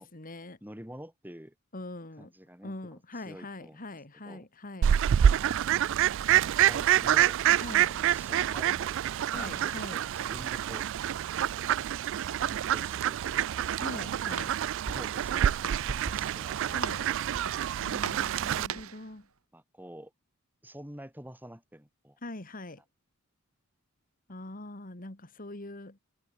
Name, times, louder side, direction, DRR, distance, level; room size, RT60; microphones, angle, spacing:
voice 1, 0.0-0.6 1.7-2.3 2.6-4.9 7.6-8.0 9.3-10.0 13.8-14.5 16.7-17.1 17.8-19.3 22.2-22.8 24.3-26.0, left 2 dB, 40° left, 2.3 m, -43 dB
voice 2, 0.6-1.5 2.2-2.7 3.1-3.8 4.2-4.5 6.7-7.4 7.7-9.0 9.3-10.8 12.3-13.6 14.0-14.2 14.9-17.2 19.5-20.1 20.6-22.2, equal, 10° right, 7.1 m, -48 dB
Fowl, 4.8-18.7, right 10 dB, 60° right, 0.3 m, -27 dB
Walk footsteps, 14.0-19.1, right 5 dB, 75° right, 1.3 m, -40 dB
head